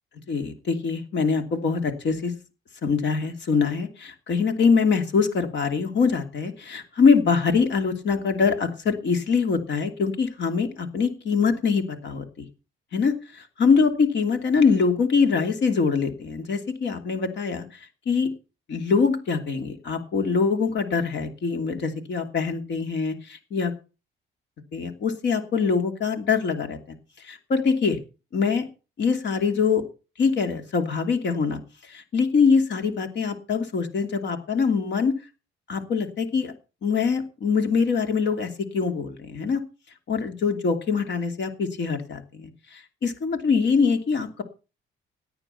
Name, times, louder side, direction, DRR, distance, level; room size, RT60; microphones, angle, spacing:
voice 1, 0.3-2.3 2.8-12.5 12.9-17.6 18.1-18.3 18.7-23.7 24.7-27.0 27.2-28.0 28.3-28.7 29.0-29.8 30.2-31.6 31.9-35.1 35.7-36.5 36.8-39.6 40.1-44.4, left 5 dB, 65° left, 6 dB, 2.8 m, -23 dB
17.0 x 9.0 x 5.6 m, 0.34 s
cardioid pair, 90°, 20 cm